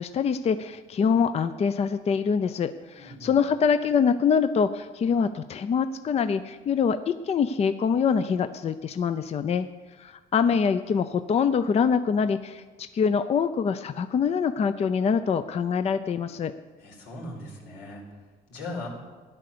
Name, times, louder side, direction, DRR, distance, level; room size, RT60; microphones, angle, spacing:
voice 1, 0.0-9.7 10.0-12.6 12.9-16.5, left 6 dB, 40° left, 11 dB, 0.6 m, -24 dB
voice 2, 3.0-3.4 16.8-18.0 18.5-18.9, left 2 dB, 90° left, -1 dB, 4.6 m, -38 dB
14.5 x 10.5 x 6.9 m, 1.3 s
cardioid pair, 110°, 17 cm